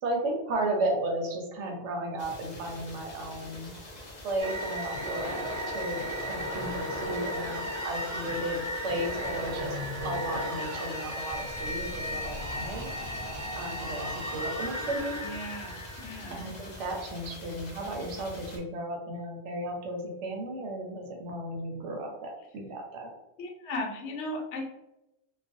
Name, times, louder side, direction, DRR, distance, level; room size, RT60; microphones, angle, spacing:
voice 1, 0.0-3.7 4.2-5.4 5.7-6.0 6.3-9.8 10.0-12.9 13.6-15.2 16.3-23.1, right 1 dB, 70° right, 1 dB, 0.9 m, -34 dB
sound 1, 2.2-18.6, left 1 dB, 45° left, 0.6 m, -46 dB
sound 2, 4.4-16.9, equal, 45° right, 0.5 m, -35 dB
sound 3, 11.3-16.2, equal, 15° left, 0.3 m, -45 dB
voice 2, 15.2-16.4 23.4-24.7, left 1 dB, 65° left, 0 dB, 0.9 m, -36 dB
2.4 x 2.2 x 2.5 m, 0.91 s
omnidirectional pair, 1.3 m